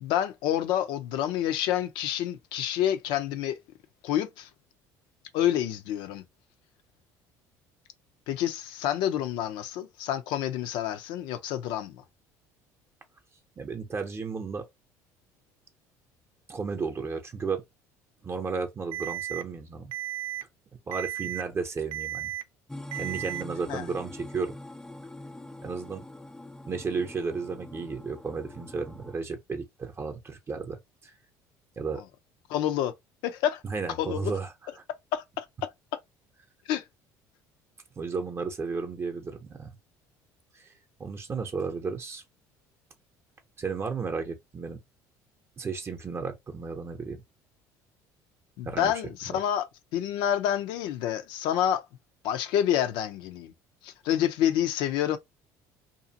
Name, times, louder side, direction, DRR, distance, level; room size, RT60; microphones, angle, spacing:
voice 1, 0.0-3.6 4.0-4.5 5.3-6.2 8.3-12.0 23.7-23.8 31.9-32.0 32.5-32.9 33.2-33.6 34.0-34.3 35.1-35.7 36.7-36.8 48.6-49.7 49.9-51.8 52.2-53.5 53.8-55.2, left 11 dB, 75° left, 0.5 m, -28 dB
voice 2, 13.6-14.7 16.5-17.6 18.2-19.9 20.9-22.3 22.9-24.5 25.6-26.1 26.7-31.1 31.8-32.0 33.6-34.5 38.0-39.7 40.5-40.7 41.0-42.2 43.6-44.8 45.6-47.2 48.6-48.9 49.3-49.4, right 5 dB, 30° right, 0.7 m, -33 dB
Alarm, 18.9-19.4 19.9-20.4 20.9-21.4 21.9-22.4 22.9-23.4, right 12 dB, 80° right, 0.4 m, -34 dB
sound 1, 22.7-29.2, left 1 dB, 5° left, 0.3 m, -44 dB
2.6 x 2.4 x 2.7 m
supercardioid pair, 90°, 8 cm